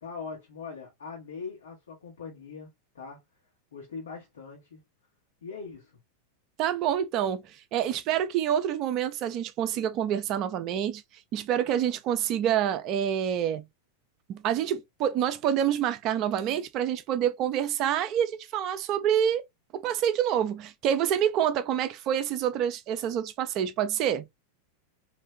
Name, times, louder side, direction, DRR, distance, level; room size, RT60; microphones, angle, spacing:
voice 1, 0.0-2.7 2.9-3.2 3.7-4.8 5.4-5.9, left 5 dB, 65° left, 1.2 m, -41 dB
voice 2, 6.6-11.0 11.3-13.6 14.3-19.4 19.7-24.2, right 10 dB, 35° right, 0.5 m, -27 dB
3.2 x 2.6 x 3.2 m
figure-of-eight pair, 90°, 0 cm